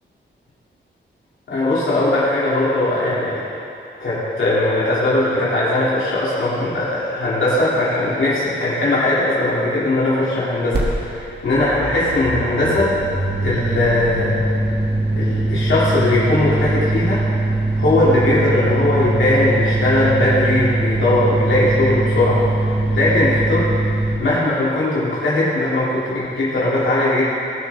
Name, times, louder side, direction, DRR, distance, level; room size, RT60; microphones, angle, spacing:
voice 1, 1.5-3.4 4.0-12.9 13.4-14.4 15.2-17.2 17.8-23.7 24.2-27.2, left 2 dB, 70° left, -9 dB, 2.8 m, -19 dB
sound 1, 10.7-10.9 11.1-24.2, right 2 dB, 55° right, 1.7 m, -21 dB
18.5 x 7.8 x 3.6 m, 2.6 s
wide cardioid pair, 170°, 21 cm